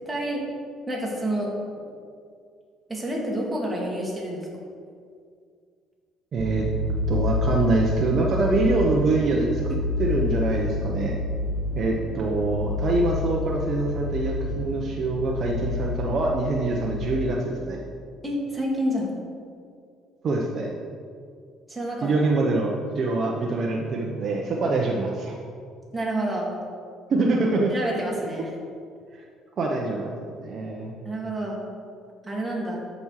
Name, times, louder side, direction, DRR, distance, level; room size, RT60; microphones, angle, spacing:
voice 1, 0.1-0.4 0.9-1.5 2.9-4.5 18.2-19.1 21.7-22.1 25.9-26.6 27.7-28.5 31.1-31.6 32.2-32.8, right 1 dB, 10° right, -3 dB, 2.0 m, -28 dB
voice 2, 6.3-6.7 7.1-11.2 11.8-17.8 20.2-20.7 22.0-25.3 27.1-27.7 28.4-28.5 29.1-29.2 29.6-30.9, right 2 dB, 40° right, -1 dB, 0.9 m, -25 dB
sound 1, 6.4-17.2, left 2 dB, 65° right, 1.0 m, -28 dB
13.0 x 5.4 x 4.8 m, 2.2 s
cardioid pair, 145°, 0 cm